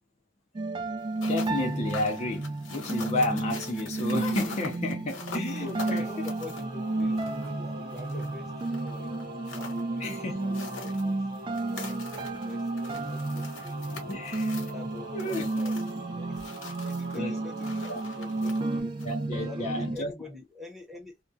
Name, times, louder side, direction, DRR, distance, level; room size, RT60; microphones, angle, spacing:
sound 1, 0.5-20.0, right 2 dB, 25° right, 0.3 m, -32 dB
sound 2, 1.0-19.3, left 4 dB, 75° left, 1.0 m, -45 dB
voice 1, 1.2-6.1 8.1-8.2 10.0-10.4 14.1-14.6 15.1-15.5 17.1-17.4 17.9-18.0 19.0-20.1, left 2 dB, 35° left, 0.5 m, -32 dB
Singing / Musical instrument, 5.5-18.8, right 2 dB, 50° right, 0.7 m, -42 dB
voice 2, 5.6-9.2 9.6-14.3 14.6-15.8 16.1-16.5 16.8-18.9 19.3-21.2, left 3 dB, ahead, 0.7 m, -45 dB
2.3 x 2.1 x 2.5 m
head